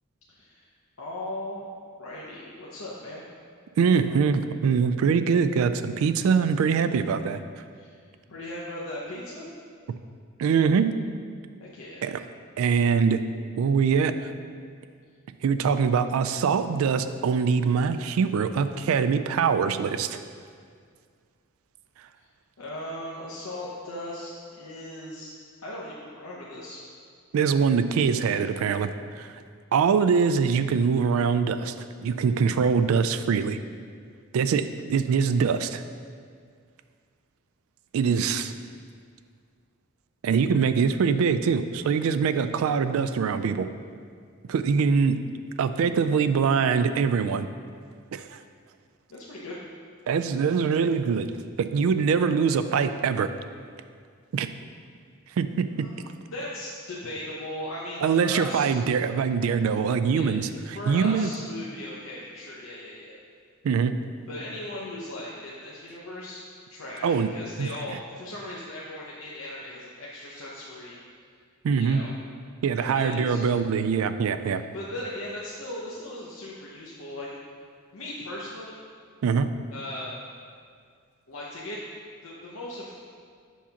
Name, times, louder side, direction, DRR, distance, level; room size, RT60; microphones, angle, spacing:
voice 1, 0.3-0.7 1.0-1.7 2.0-3.2 3.8-4.1 7.7-8.0 8.3-9.5 11.6-12.1 22.2-22.3 22.6-25.3 25.6-26.8 49.1-49.6 55.8-56.0 56.3-58.7 60.1-60.4 60.7-63.2 64.3-66.4 66.7-71.0 71.8-72.1 72.8-73.4 74.4-77.3 77.9-78.8 79.7-80.2 81.3-81.8 82.2-82.9, left 1 dB, 80° left, -5 dB, 0.8 m, -38 dB
voice 2, 3.8-7.4 10.4-11.0 12.0-12.2 12.6-13.2 13.6-14.3 15.4-20.2 27.3-28.9 29.1-29.3 29.7-31.7 32.0-33.6 34.3-35.8 37.9-38.5 40.2-43.7 44.5-45.2 45.6-47.5 48.1-48.4 50.1-51.3 51.6-53.3 54.3-54.5 55.4-55.9 58.0-60.5 60.9-61.3 63.6-63.9 67.0-67.3 67.6-67.7 71.6-72.0 72.6-74.6 79.2-79.5, right 6 dB, 75° right, 11 dB, 0.3 m, -23 dB
7.2 x 2.8 x 5.8 m, 2.1 s
head